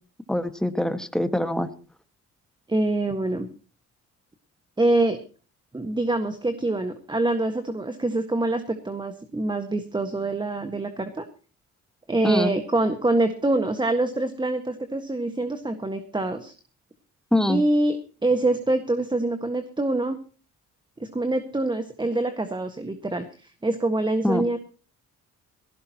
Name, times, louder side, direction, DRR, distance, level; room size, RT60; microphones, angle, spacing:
voice 1, 0.3-1.7 12.2-12.5 17.3-17.6 24.2-24.4, left 1 dB, ahead, 9 dB, 1.7 m, -23 dB
voice 2, 2.7-3.5 4.8-5.2 5.7-11.2 12.1-16.5 17.5-18.0 18.2-20.2 21.0-24.6, right 2 dB, 15° right, 8 dB, 1.6 m, -25 dB
18.5 x 16.5 x 3.0 m, 0.37 s
cardioid pair, 90°, 30 cm